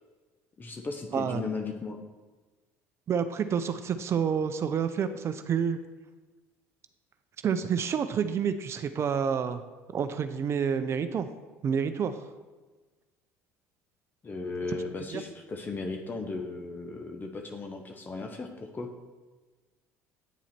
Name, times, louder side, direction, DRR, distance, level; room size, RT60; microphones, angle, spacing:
voice 1, 0.6-2.0 14.2-18.9, left 3 dB, 30° left, 4 dB, 1.1 m, -36 dB
voice 2, 3.1-5.8 7.4-9.6 9.9-11.3 11.6-12.2 15.1-15.2, right 7 dB, 45° right, 10 dB, 0.7 m, -28 dB
9.3 x 7.1 x 4.4 m, 1.3 s
supercardioid pair, 90°, 7 cm